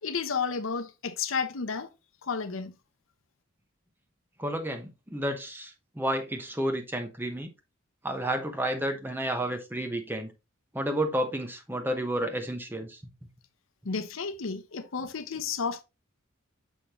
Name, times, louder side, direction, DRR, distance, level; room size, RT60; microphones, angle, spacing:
voice 1, 0.0-1.9 2.2-2.7 13.8-15.8, left 5 dB, 75° left, 0.7 m, -32 dB
voice 2, 4.4-7.5 8.0-10.3 10.7-13.0, right 1 dB, 10° right, 0.8 m, -31 dB
6.3 x 5.2 x 2.9 m
head